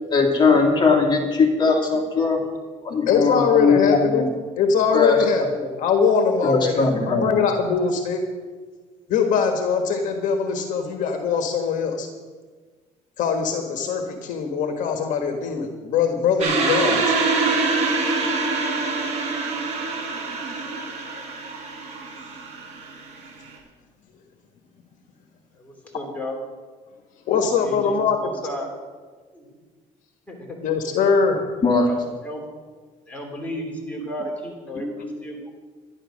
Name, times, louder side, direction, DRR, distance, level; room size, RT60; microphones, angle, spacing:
voice 1, 0.1-2.4 2.8-4.3 4.9-5.5 6.4-7.3 31.6-31.9, left 4 dB, 30° left, 1 dB, 2.5 m, -19 dB
voice 2, 2.9-4.2 4.6-8.2 9.1-12.1 13.2-17.1 19.7-20.4 27.3-28.2 30.6-31.4 34.7-35.1, left 6 dB, 65° left, 4 dB, 1.5 m, -22 dB
sound 1, 16.4-23.5, right 3 dB, 50° right, 4.2 m, -25 dB
voice 3, 25.6-26.4 27.3-28.7 29.3-29.5 30.3-30.6 31.6-32.4 33.1-35.5, equal, 10° left, -1 dB, 3.6 m, -34 dB
11.5 x 11.0 x 6.4 m, 1.5 s
cardioid pair, 125°, 14 cm